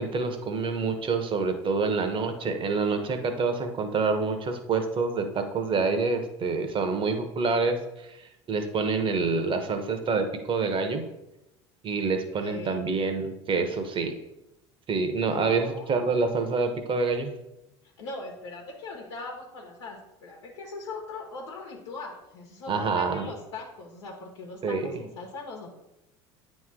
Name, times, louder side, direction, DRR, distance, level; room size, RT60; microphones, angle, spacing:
voice 1, 0.0-8.2 8.5-11.0 11.8-14.1 14.9-17.3 22.7-23.3 24.6-24.9, right 4 dB, 35° right, 7 dB, 1.0 m, -27 dB
voice 2, 12.4-12.8 15.3-16.3 18.0-25.7, left 3 dB, 80° left, -2 dB, 1.1 m, -40 dB
9.1 x 3.2 x 3.7 m, 0.89 s
hypercardioid pair, 75°, 15 cm